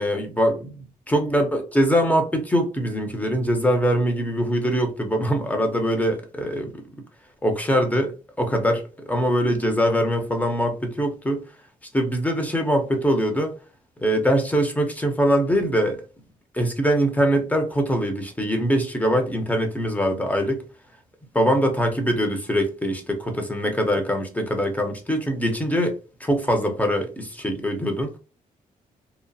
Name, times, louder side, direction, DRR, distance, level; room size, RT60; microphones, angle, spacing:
voice 1, 0.0-6.7 7.4-11.4 11.9-13.5 14.0-16.0 16.5-20.6 21.3-28.2, equal, 10° left, 0.7 m, -23 dB
2.9 x 2.0 x 2.6 m
cardioid pair, 90°, 15 cm